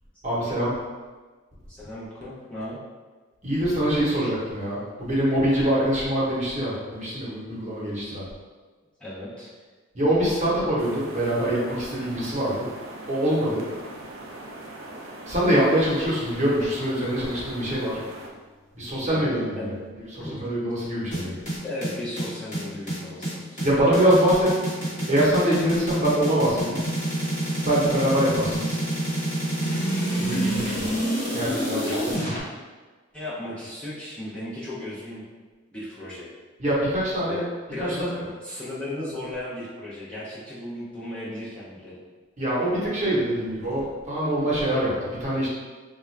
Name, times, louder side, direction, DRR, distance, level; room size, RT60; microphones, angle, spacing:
voice 1, 0.2-0.8 3.4-8.2 9.9-12.7 13.1-13.7 15.3-18.0 18.7-21.4 23.6-24.5 25.1-26.8 27.6-28.8 30.2-30.9 31.3-32.1 36.6-37.4 37.8-38.3 42.4-45.5, right 1 dB, 35° right, -7 dB, 1.0 m, -24 dB
voice 2, 1.7-2.8 9.0-9.5 19.1-19.3 19.6-19.8 20.2-20.5 21.6-23.6 31.8-32.2 33.1-35.2 35.7-36.3 37.2-37.4 37.7-38.1 38.4-42.0, left 1 dB, 5° left, -10 dB, 0.6 m, -35 dB
sound 1, 10.8-18.3, right 1 dB, 70° right, 0.5 m, -41 dB
sound 2, 21.1-32.4, right 1 dB, 35° left, 1.3 m, -27 dB
3.5 x 2.3 x 3.2 m, 1.4 s
head